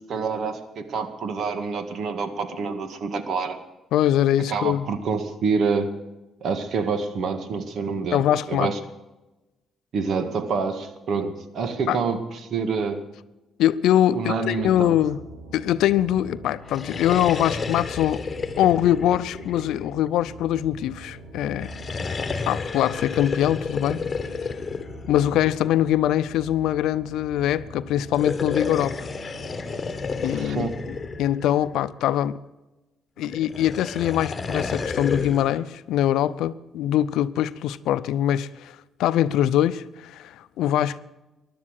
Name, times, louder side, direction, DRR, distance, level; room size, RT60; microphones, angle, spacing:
voice 1, 0.1-3.6 4.5-5.9 6.4-8.8 9.9-13.0 14.1-14.9 30.2-30.8, right 5 dB, 65° right, 1.9 m, -27 dB
voice 2, 3.9-4.9 8.1-8.7 11.9-12.0 13.6-15.2 15.5-18.2 18.6-21.7 22.5-24.0 25.1-29.0 30.2-32.4 33.2-41.0, left 12 dB, 85° left, 0.5 m, -23 dB
sound 1, 14.6-31.3, right 2 dB, 85° right, 4.8 m, -43 dB
sound 2, 16.6-20.2 21.5-25.8 28.0-32.0 33.3-35.6, left 4 dB, 35° left, 1.6 m, -31 dB
16.0 x 11.5 x 6.5 m
cardioid pair, 90°, 0 cm